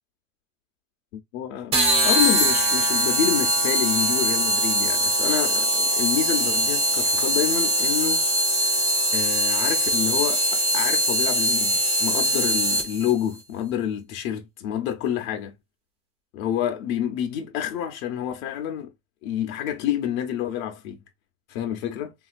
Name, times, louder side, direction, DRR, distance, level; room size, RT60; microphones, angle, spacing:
voice 1, 1.3-8.3 8.6-8.8 9.1-15.5 16.3-18.9 19.2-21.0 21.5-22.1, left 9 dB, 70° left, 0.8 m, -28 dB
sound 1, 1.7-13.1, equal, 15° right, 0.4 m, -22 dB
3.2 x 2.7 x 2.5 m
supercardioid pair, 155°, 43 cm